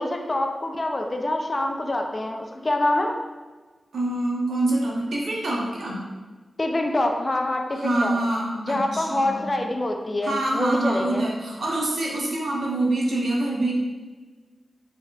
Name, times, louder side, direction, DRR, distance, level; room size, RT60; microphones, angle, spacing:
voice 1, 0.0-3.1 6.6-8.2 8.7-11.3, left 1 dB, 30° left, 3 dB, 0.4 m, -25 dB
voice 2, 3.9-6.0 7.7-9.5 10.2-13.7, right 2 dB, 85° right, -3 dB, 0.9 m, -25 dB
4.1 x 3.6 x 2.4 m, 1.3 s
wide cardioid pair, 105°, 0 cm